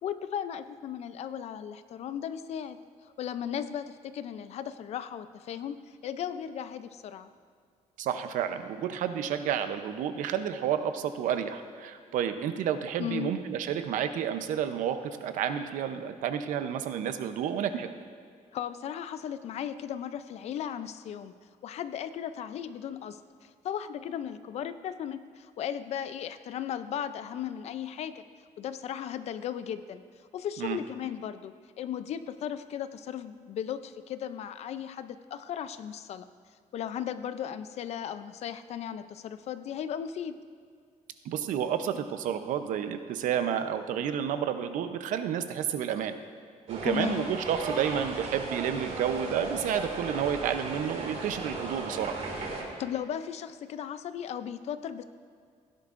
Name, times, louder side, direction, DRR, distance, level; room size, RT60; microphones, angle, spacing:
voice 1, 0.0-2.8 3.0-5.8 6.0-7.3 13.0-13.3 18.5-21.3 21.6-28.2 28.6-30.0 30.3-36.3 36.7-40.3 46.8-47.3 52.8-55.0, left 9 dB, 55° left, 12 dB, 0.5 m, -36 dB
voice 2, 8.0-17.9 30.6-30.8 41.2-46.1 46.7-52.2, right 9 dB, 75° right, 9 dB, 0.7 m, -30 dB
sound 1, 46.7-52.6, right 3 dB, 55° right, 2.2 m, -36 dB
16.5 x 10.5 x 2.5 m, 2.2 s
cardioid pair, 165°, 13 cm